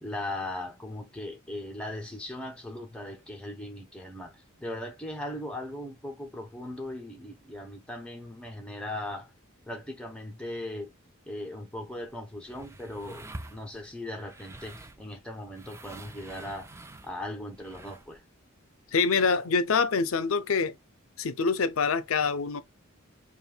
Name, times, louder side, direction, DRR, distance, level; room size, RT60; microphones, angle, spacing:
voice 1, 0.0-9.3 9.7-10.9 11.3-16.7 17.0-18.2, left 1 dB, 5° left, 1.0 m, -38 dB
sound 1, 11.9-18.2, right 2 dB, 15° right, 0.4 m, -47 dB
voice 2, 18.9-20.7 21.2-22.6, left 5 dB, 80° left, 0.6 m, -25 dB
5.4 x 2.5 x 2.3 m
head